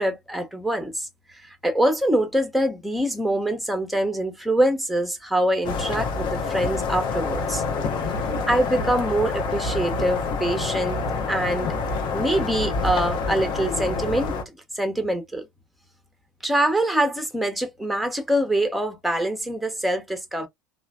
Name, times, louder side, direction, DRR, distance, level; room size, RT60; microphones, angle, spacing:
voice 1, 0.0-7.6 8.5-11.0 11.3-11.7 12.1-14.4 14.7-15.5 16.4-20.5, right 1 dB, ahead, 0.8 m, -24 dB
sound 1, 5.6-14.4, left 4 dB, 50° left, 0.7 m, -27 dB
3.0 x 2.0 x 2.3 m
hypercardioid pair, 75°, 11 cm